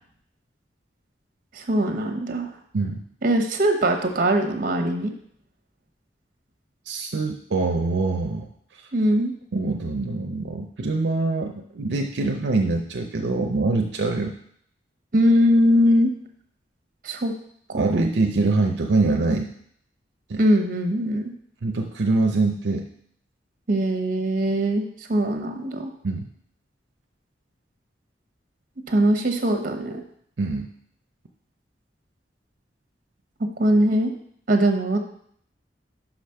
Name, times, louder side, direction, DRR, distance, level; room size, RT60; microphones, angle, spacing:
voice 1, 1.5-2.5 3.2-5.1 8.9-9.3 15.1-16.1 17.0-17.3 17.7-18.0 20.4-21.2 23.7-25.9 28.9-30.0 33.6-34.1 34.5-35.0, equal, 50° right, 5 dB, 1.0 m, -21 dB
voice 2, 6.9-8.5 9.5-14.3 17.7-19.5 20.3-20.4 21.6-22.9 26.0-26.3 30.4-30.7, right 3 dB, 75° right, 3 dB, 0.6 m, -24 dB
5.9 x 5.0 x 5.7 m, 0.67 s
head